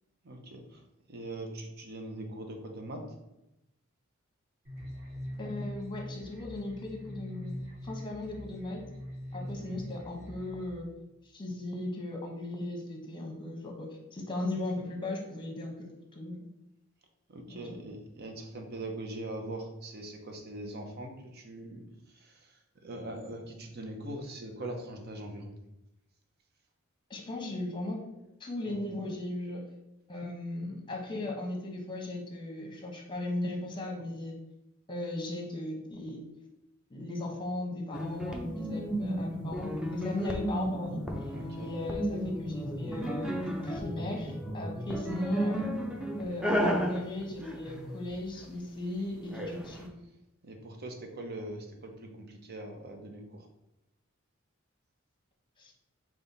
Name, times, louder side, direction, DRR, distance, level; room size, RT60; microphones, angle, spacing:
voice 1, 0.2-3.0 9.4-9.7 17.3-25.6 28.6-28.8 40.1-40.2 41.3-41.8 50.0-50.1 50.4-53.5, right 1 dB, 50° right, 3 dB, 0.7 m, -42 dB
sound 1, 4.6-10.7, left 1 dB, 30° right, 1.7 m, -42 dB
voice 2, 5.4-7.6 7.8-8.8 9.3-10.9 11.3-16.4 17.5-17.6 27.1-28.0 28.4-29.6 30.1-34.4 34.9-36.2 36.9-45.7 46.2-49.9 55.6-55.7, left 2 dB, 25° left, 1 dB, 1.0 m, -37 dB
sound 2, 37.9-48.4 49.3-49.8, equal, 5° right, 0.6 m, -33 dB
5.4 x 2.4 x 4.0 m, 0.90 s
head